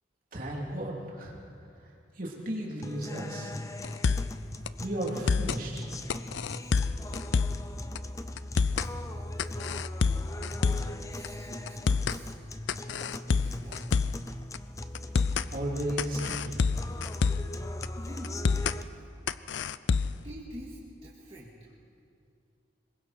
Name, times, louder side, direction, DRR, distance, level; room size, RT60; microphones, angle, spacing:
voice 1, 0.3-1.4 2.2-3.5 4.8-5.9 15.5-16.6, right 1 dB, 45° right, -2 dB, 3.3 m, -34 dB
sound 1, 2.8-18.8, left 1 dB, 15° left, 0.6 m, -39 dB
sound 2, 3.8-4.4 4.7-4.8 5.1-5.6 6.1-7.7 7.9-8.0 8.4-8.9 9.4-11.0 11.2-11.3 11.7-12.2 12.7-14.2 14.5-14.6 14.9-15.5 16.0-17.5 17.8-17.9 18.2-18.8 19.3-20.2, left 5 dB, 75° left, 0.5 m, -27 dB
voice 2, 8.8-9.7 11.1-12.3 12.9-13.8 18.0-18.5 20.2-21.7, equal, 30° right, -6 dB, 2.1 m, -47 dB
26.0 x 22.0 x 4.5 m, 2.5 s
head